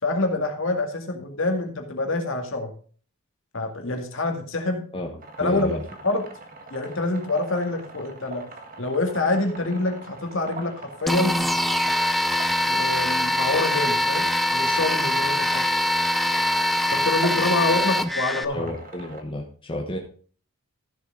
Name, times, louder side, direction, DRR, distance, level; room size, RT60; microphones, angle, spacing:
voice 1, 0.0-2.7 3.5-4.8 5.4-5.8 6.0-6.2 6.7-8.4 8.8-11.5 12.7-14.3 14.5-15.6 16.9-18.7, left 2 dB, 60° left, 3 dB, 2.1 m, -26 dB
sound 1, 5.2-19.2, right 3 dB, 40° right, 1.6 m, -42 dB
voice 2, 5.4-5.8 17.8-17.9 18.5-20.0, left 1 dB, 25° left, 2 dB, 1.2 m, -31 dB
lead drug, 11.1-18.4, left 1 dB, ahead, 0.5 m, -23 dB
14.0 x 7.2 x 3.8 m, 0.43 s
head